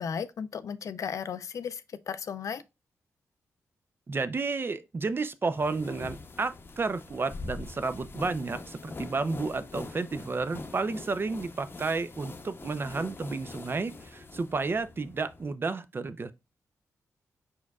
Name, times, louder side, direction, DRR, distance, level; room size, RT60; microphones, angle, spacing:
voice 1, 0.0-1.8 2.1-2.6, left 7 dB, 70° left, 0.4 m, -35 dB
voice 2, 4.1-16.3, right 4 dB, 40° right, 0.5 m, -31 dB
sound 1, 5.5-15.5, left 3 dB, 40° left, 0.7 m, -44 dB
4.8 x 4.4 x 2.3 m
cardioid pair, 65°, 6 cm